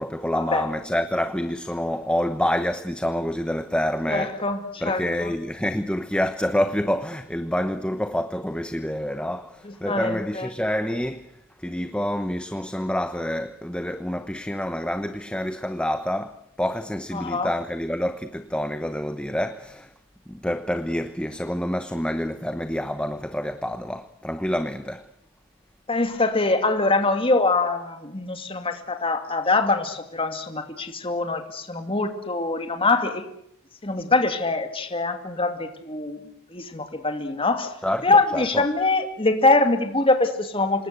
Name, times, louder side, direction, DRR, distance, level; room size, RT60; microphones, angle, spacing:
voice 1, 0.0-4.4 4.8-11.3 11.6-19.9 20.3-25.0 37.8-38.7, left 1 dB, 5° left, 0.9 m, -27 dB
voice 2, 4.1-5.3 9.6-10.5 17.1-17.5 25.9-33.3 33.8-36.2 36.5-37.7 38.0-40.9, left 3 dB, 25° left, 2.4 m, -23 dB
27.0 x 20.5 x 8.1 m
head